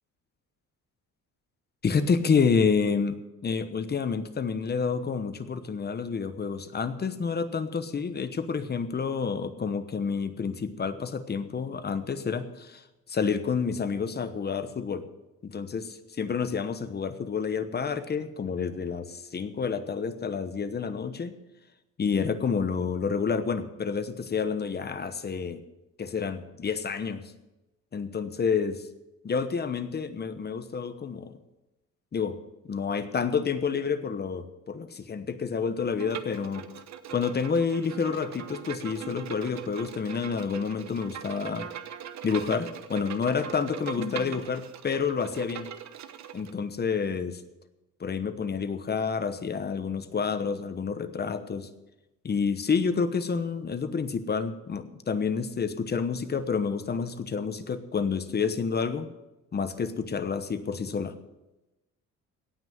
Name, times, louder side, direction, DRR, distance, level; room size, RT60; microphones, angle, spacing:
voice 1, 1.8-12.8 13.1-15.1 15.4-21.4 22.0-25.6 26.0-27.2 27.9-28.8 29.2-31.3 32.1-32.4 32.6-36.7 37.1-41.6 42.2-45.7 46.3-47.4 48.0-51.7 52.2-59.1 59.5-61.2, left 5 dB, 30° left, 11 dB, 1.1 m, -29 dB
Bowed string instrument, 36.0-46.5, right 9 dB, 60° right, 1.1 m, -40 dB
17.5 x 6.1 x 9.1 m, 1.0 s
cardioid pair, 130°, 32 cm